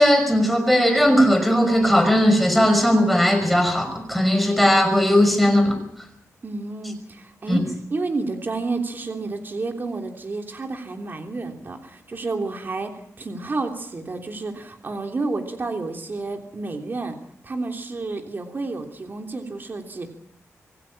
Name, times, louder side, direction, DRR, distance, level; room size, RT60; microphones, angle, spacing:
voice 1, 0.0-5.8 7.5-7.6, equal, ahead, 6 dB, 5.6 m, -18 dB
voice 2, 6.4-17.2 17.4-20.1, right 3 dB, 40° right, 4 dB, 3.3 m, -30 dB
26.0 x 15.5 x 8.8 m, 0.74 s
wide cardioid pair, 110°, 5 cm